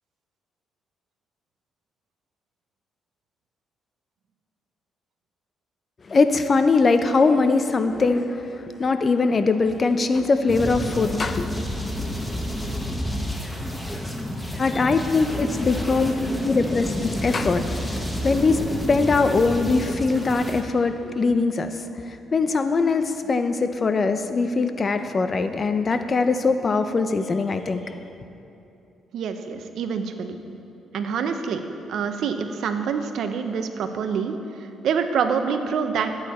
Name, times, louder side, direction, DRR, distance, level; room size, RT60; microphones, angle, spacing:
voice 1, 6.1-11.5 14.6-16.1 16.4-17.6 18.2-18.6 18.9-21.8 22.1-27.9, left 4 dB, 35° left, 9 dB, 0.6 m, -21 dB
sound 1, 10.5-20.6, left 1 dB, 10° left, 1.1 m, -29 dB
voice 2, 29.1-30.4 30.9-31.6 31.9-36.1, right 6 dB, 75° right, 7 dB, 0.7 m, -26 dB
12.0 x 8.8 x 4.3 m, 2.7 s
cardioid pair, 90°, 0 cm